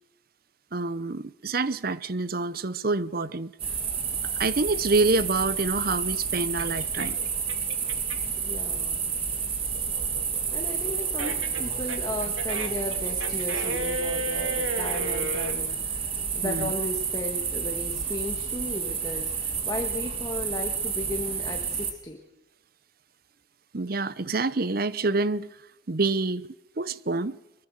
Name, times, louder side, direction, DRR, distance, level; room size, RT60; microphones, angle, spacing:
voice 1, 0.7-3.5 4.2-7.2 16.4-16.7 23.7-25.5 25.9-26.5 26.8-27.4, right 3 dB, 50° right, 0.8 m, -27 dB
sound 1, 3.6-21.9, right 6 dB, 30° right, 2.4 m, -30 dB
sound 2, 5.0-8.4 8.8-15.5, right 2 dB, 85° right, 2.8 m, -34 dB
voice 2, 8.4-9.1 10.5-22.2, left 1 dB, 20° left, 1.9 m, -35 dB
23.5 x 22.5 x 6.5 m
head